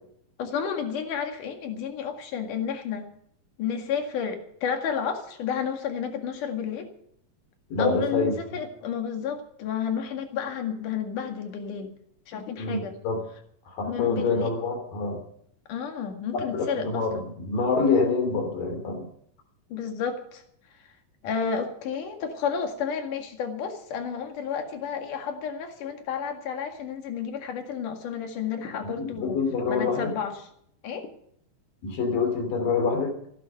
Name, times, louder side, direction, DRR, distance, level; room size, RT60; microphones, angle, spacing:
voice 1, 0.4-3.1 3.6-6.9 7.8-11.9 12.3-13.0 13.9-14.5 15.7-17.3 19.7-20.4 21.2-29.4 29.7-30.5 30.8-31.1, left 7 dB, 70° left, 4 dB, 3.5 m, -31 dB
voice 2, 7.7-8.4 12.6-13.2 13.7-15.2 16.3-19.1 29.0-30.1 31.8-33.1, left 4 dB, 85° left, 5 dB, 4.6 m, -26 dB
15.5 x 11.5 x 6.6 m, 0.69 s
omnidirectional pair, 3.9 m